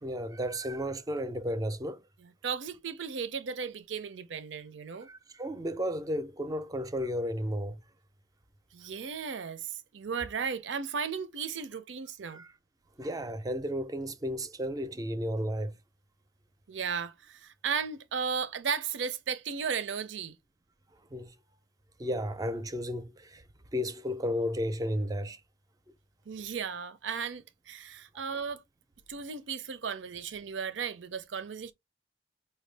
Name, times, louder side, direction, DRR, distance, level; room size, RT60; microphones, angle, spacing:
voice 1, 0.0-2.0 5.0-7.8 12.2-12.5 13.0-15.8 21.1-21.3 22.0-23.4 23.7-25.4 28.1-28.3, equal, 20° right, 0.4 m, -33 dB
voice 2, 2.4-5.1 8.7-12.4 16.7-20.3 26.3-28.6 29.1-31.7, right 6 dB, 90° right, 0.5 m, -35 dB
5.2 x 2.2 x 3.2 m
head